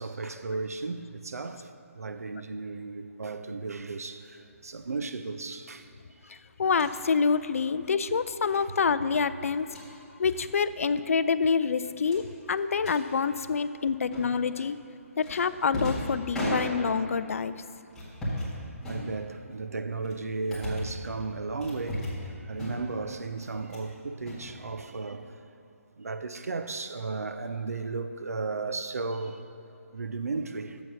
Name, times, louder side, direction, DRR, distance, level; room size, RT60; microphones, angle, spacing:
voice 1, 0.0-5.9 6.3-6.4 8.1-8.2 9.4-9.5 14.6-14.7 18.9-25.4 26.0-29.4 29.9-30.8, right 3 dB, 80° right, 0.6 m, -35 dB
voice 2, 6.3-14.8 15.2-17.5, left 5 dB, 65° left, 0.4 m, -27 dB
sound 1, 6.7-7.0 8.4-8.6 9.5-9.9 10.3-10.5 10.8-11.0 11.3-11.4 12.0-13.0 14.1-14.6 15.2-17.1 17.9-18.5 18.8-19.5 20.0-21.0 21.6-22.3 22.6-23.0 23.4-23.9 24.2-25.1, equal, 5° left, 1.7 m, -36 dB
7.9 x 7.0 x 5.8 m
figure-of-eight pair, 145°, 8 cm